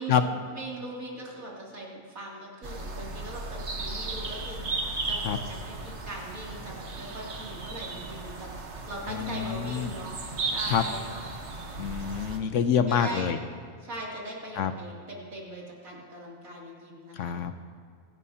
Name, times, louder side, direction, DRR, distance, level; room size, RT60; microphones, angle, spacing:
voice 1, 0.0-4.6 5.0-8.5 8.8-11.3 12.9-13.3 13.8-17.3, right 1 dB, 75° right, -4 dB, 3.3 m, -40 dB
sound 1, 2.6-12.4, right 3 dB, 55° right, 1.5 m, -35 dB
voice 2, 9.1-9.9 10.7-10.8 11.8-13.4 14.6-14.7 17.2-17.5, left 8 dB, 65° left, 9 dB, 1.0 m, -26 dB
25.5 x 11.0 x 2.9 m, 2.1 s
omnidirectional pair, 1.5 m